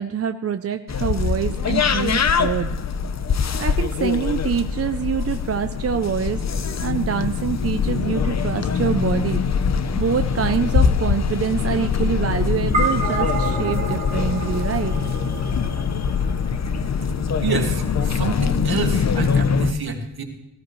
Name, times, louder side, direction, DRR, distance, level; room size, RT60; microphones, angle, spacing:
voice 1, 0.0-2.8 3.6-6.4 6.8-9.4 10.0-15.1, right 7 dB, 35° right, 8 dB, 0.4 m, -25 dB
sound 1, 0.9-19.7, left 6 dB, 40° left, 0.7 m, -23 dB
sound 2, 12.7-17.3, right 3 dB, 80° right, 2.4 m, -29 dB
voice 2, 17.4-20.2, right 5 dB, 55° right, 2 dB, 2.0 m, -28 dB
18.0 x 14.5 x 3.1 m, 0.94 s
wide cardioid pair, 120°, 44 cm